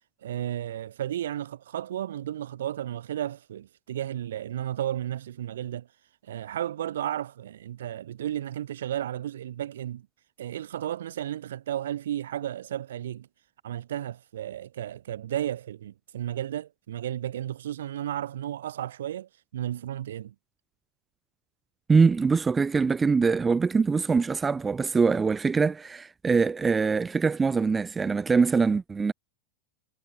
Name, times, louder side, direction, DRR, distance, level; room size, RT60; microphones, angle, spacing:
voice 1, 0.2-5.9 6.2-10.1 10.4-13.3 13.6-20.3, right 11 dB, 60° right, 0.7 m, -33 dB
voice 2, 21.9-29.1, right 5 dB, 15° right, 0.4 m, -23 dB
figure-of-eight pair, 90°, 0 cm